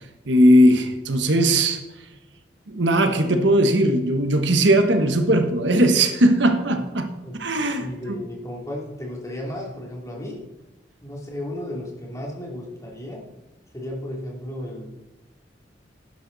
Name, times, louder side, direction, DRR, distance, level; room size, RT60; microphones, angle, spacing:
voice 1, 0.3-1.8 2.7-7.1 7.4-7.9, right 1 dB, 80° right, 7 dB, 1.3 m, -18 dB
voice 2, 7.8-10.4 11.0-13.2 13.7-14.9, left 1 dB, 15° left, -2 dB, 3.0 m, -34 dB
11.5 x 11.0 x 4.1 m, 1.0 s
head